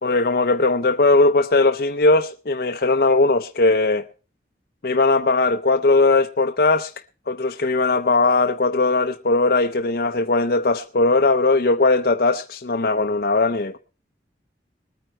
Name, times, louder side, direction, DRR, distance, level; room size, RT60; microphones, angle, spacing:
voice 1, 0.0-4.1 4.8-6.9 7.3-13.8, left 3 dB, 55° left, 0.6 m, -19 dB
20.0 x 9.2 x 4.4 m
head